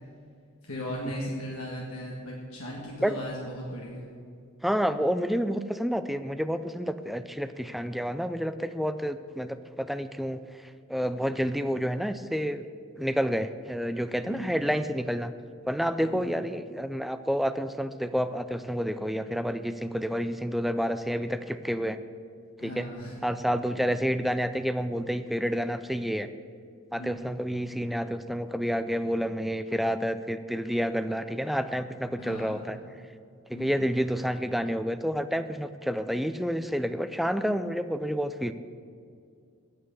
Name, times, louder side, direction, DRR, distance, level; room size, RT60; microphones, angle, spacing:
voice 1, 0.6-4.0 14.2-14.5 16.0-16.4 22.6-23.1 23.7-23.9 26.9-27.3 32.2-32.8 33.5-33.8, equal, 80° left, -3 dB, 1.7 m, -37 dB
voice 2, 4.6-10.4 10.9-12.7 13.0-15.3 15.7-22.0 22.6-22.9 23.2-26.3 26.9-32.8 33.5-38.5, equal, ahead, 11 dB, 0.4 m, -29 dB
9.6 x 8.3 x 8.0 m, 2.3 s
head